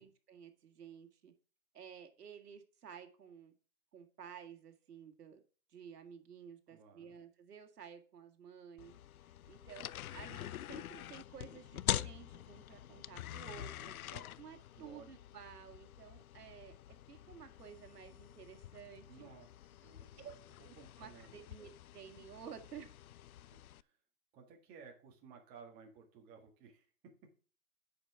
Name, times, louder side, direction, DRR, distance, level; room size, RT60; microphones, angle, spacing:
voice 1, 0.0-1.3 1.7-3.5 3.9-5.4 5.7-8.9 9.5-13.9 14.4-19.3 20.2-20.4 20.6-22.9, right 7 dB, 75° right, 5 dB, 2.0 m, -53 dB
voice 2, 6.7-7.2 14.1-14.2 14.8-15.0 19.1-19.5 19.8-20.3 20.7-21.3 23.5-23.9 24.3-27.1, right 5 dB, 20° right, 2 dB, 1.6 m, -57 dB
sound 1, 8.8-23.8, left 12 dB, 65° left, 0.5 m, -45 dB
8.9 x 5.2 x 5.8 m, 0.40 s
hypercardioid pair, 150°, 47 cm